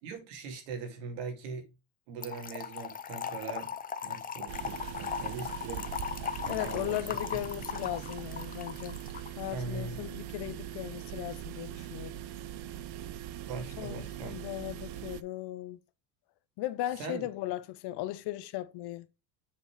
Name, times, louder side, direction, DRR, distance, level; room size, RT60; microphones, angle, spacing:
voice 1, 0.0-1.7 2.1-3.7 4.0-5.9 6.4-7.0 9.5-10.0 13.4-14.4 17.0-17.3, right 4 dB, 80° right, 2.5 m, -41 dB
Trickle dribble / Fill (with liquid), 2.2-9.3, left 7 dB, 20° left, 0.5 m, -38 dB
sound 1, 4.5-15.2, right 11 dB, 55° right, 0.7 m, -41 dB
voice 2, 6.5-9.0 9.4-12.1 13.8-15.8 16.6-19.1, left 15 dB, 55° left, 0.9 m, -37 dB
7.0 x 4.1 x 4.7 m
supercardioid pair, 105°, 47 cm